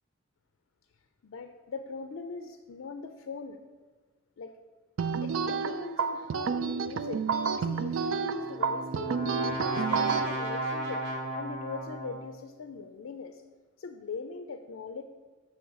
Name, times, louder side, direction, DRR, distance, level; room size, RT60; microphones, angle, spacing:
voice 1, 1.2-3.6 4.4-4.5 5.2-7.3 7.6-11.0 11.3-13.4 13.8-15.0, left 4 dB, 85° left, 7 dB, 0.4 m, -41 dB
sound 1, 5.0-10.3, right 5 dB, 75° right, 0.4 m, -30 dB
Brass instrument, 8.2-12.4, right 1 dB, 60° right, 1.1 m, -35 dB
7.9 x 3.2 x 6.3 m, 1.4 s
head